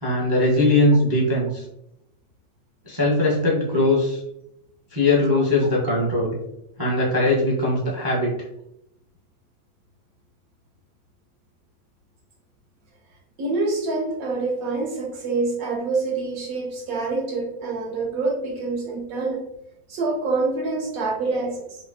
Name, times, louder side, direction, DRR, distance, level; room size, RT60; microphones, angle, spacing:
voice 1, 0.0-1.6 2.9-4.2 4.9-6.4 6.8-8.4, left 2 dB, 30° right, -5 dB, 0.4 m, -20 dB
voice 2, 13.4-19.4 19.9-21.8, right 3 dB, 65° right, 1 dB, 0.9 m, -26 dB
5.0 x 2.2 x 2.6 m, 0.81 s
omnidirectional pair, 2.0 m